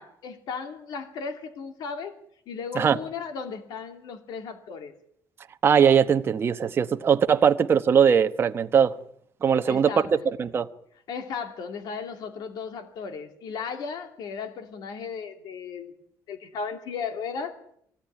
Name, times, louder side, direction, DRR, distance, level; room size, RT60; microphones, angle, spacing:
voice 1, 0.0-2.2 2.5-4.9 9.7-10.2 11.1-15.9 16.3-17.5, left 5 dB, 65° left, 2.5 m, -35 dB
voice 2, 5.6-8.9 9.4-9.9 10.4-10.7, right 7 dB, 30° right, 1.0 m, -20 dB
23.5 x 17.5 x 9.8 m
cardioid pair, 170°, 8 cm